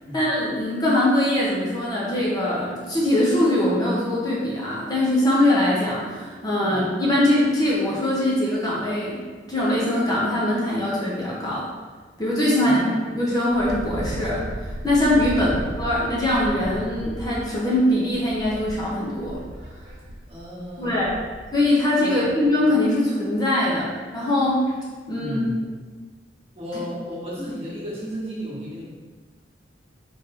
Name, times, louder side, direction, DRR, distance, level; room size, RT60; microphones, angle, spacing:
voice 1, 0.1-11.7 12.2-12.8 13.1-14.4 14.8-19.4 20.8-21.1 21.5-24.7 25.1-25.4, left 1 dB, 20° left, -6 dB, 0.7 m, -22 dB
voice 2, 12.5-12.9 15.3-15.5 20.3-20.9 22.0-22.3 25.1-25.6 26.5-28.9, equal, 35° right, -7 dB, 1.1 m, -33 dB
Wind, 13.5-21.6, right 1 dB, 65° right, 0.5 m, -35 dB
3.3 x 2.6 x 3.6 m, 1.4 s
head